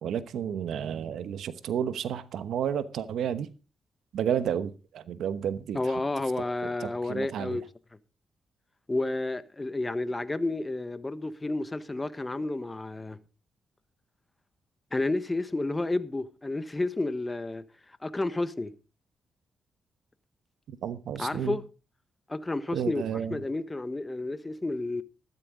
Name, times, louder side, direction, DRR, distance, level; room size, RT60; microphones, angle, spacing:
voice 1, 0.0-3.5 4.1-6.0 6.6-7.6 20.7-21.6 22.7-23.4, right 8 dB, 85° right, 1.0 m, -31 dB
voice 2, 5.7-7.6 8.9-13.2 14.9-17.6 18.0-18.7 21.2-21.6 22.3-23.0 23.3-25.0, left 2 dB, 20° left, 1.2 m, -31 dB
14.0 x 12.5 x 3.7 m
cardioid pair, 75°, 0 cm